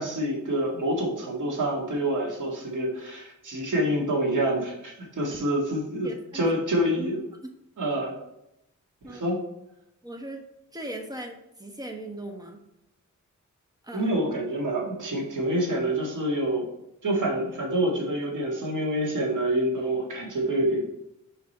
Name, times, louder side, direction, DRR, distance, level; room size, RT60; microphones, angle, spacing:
voice 1, 0.0-7.2 7.8-8.2 9.0-9.4 13.9-16.7 17.0-20.8, right 1 dB, 80° right, -1 dB, 1.7 m, -27 dB
voice 2, 6.0-6.5 9.0-9.2 10.0-10.4 10.7-12.6 13.8-14.1, right 1 dB, 10° right, 3 dB, 1.1 m, -38 dB
5.1 x 4.8 x 4.1 m, 0.85 s
wide cardioid pair, 90°, 31 cm